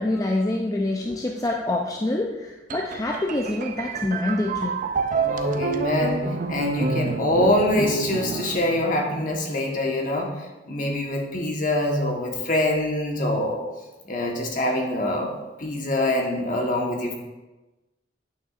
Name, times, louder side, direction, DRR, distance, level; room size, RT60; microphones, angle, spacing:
voice 1, 0.0-4.8, left 2 dB, 20° left, 1 dB, 0.4 m, -26 dB
sound 1, 2.7-9.4, right 4 dB, 45° right, 0.4 m, -28 dB
voice 2, 5.2-10.3 10.7-13.6 14.0-15.3 15.6-17.1, left 1 dB, 45° left, 1 dB, 1.3 m, -24 dB
9.3 x 8.6 x 2.5 m, 1.1 s
head